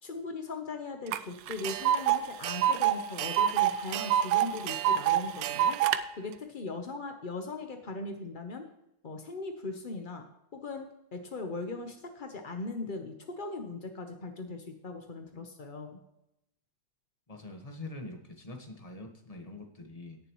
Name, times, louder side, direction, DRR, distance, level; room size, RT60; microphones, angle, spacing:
voice 1, 0.0-8.6 9.0-10.3 10.5-10.9 11.1-16.0, left 3 dB, 65° left, 5 dB, 0.5 m, -39 dB
Tick, 1.1-1.2 1.5-6.0, right 11 dB, 85° right, 1.5 m, -26 dB
voice 2, 17.3-20.2, left 2 dB, 20° left, 4 dB, 1.1 m, -44 dB
18.0 x 7.1 x 3.1 m, 0.84 s
omnidirectional pair, 2.3 m